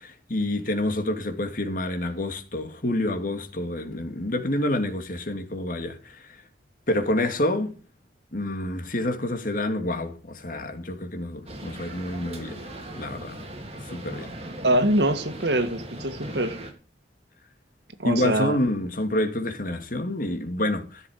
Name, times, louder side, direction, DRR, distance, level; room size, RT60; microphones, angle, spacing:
voice 1, 0.0-6.4 6.9-7.8 8.3-12.6 12.9-13.4 13.8-14.3 18.0-21.0, left 1 dB, 50° left, 2.5 m, -28 dB
sound 1, 11.5-16.7, right 1 dB, 35° right, 3.1 m, -38 dB
voice 2, 14.6-16.6 18.0-18.6, right 1 dB, 75° right, 1.8 m, -24 dB
14.5 x 7.2 x 6.5 m
head